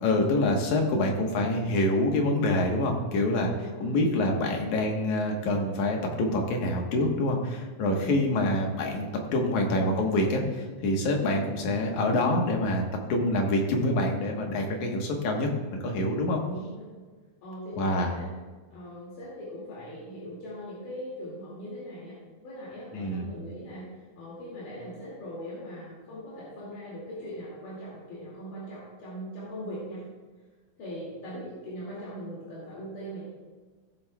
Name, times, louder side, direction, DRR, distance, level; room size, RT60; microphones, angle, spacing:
voice 1, 0.0-3.5 3.8-12.8 13.1-16.4 17.8-18.2 22.9-23.3, left 1 dB, 70° left, 1 dB, 2.7 m, -26 dB
voice 2, 3.5-4.0 7.9-8.2 16.1-17.0 17.4-18.3 18.7-22.2 22.4-30.1 30.8-33.2, equal, 90° left, -8 dB, 4.0 m, -40 dB
18.0 x 7.4 x 2.3 m, 1.4 s
omnidirectional pair, 3.6 m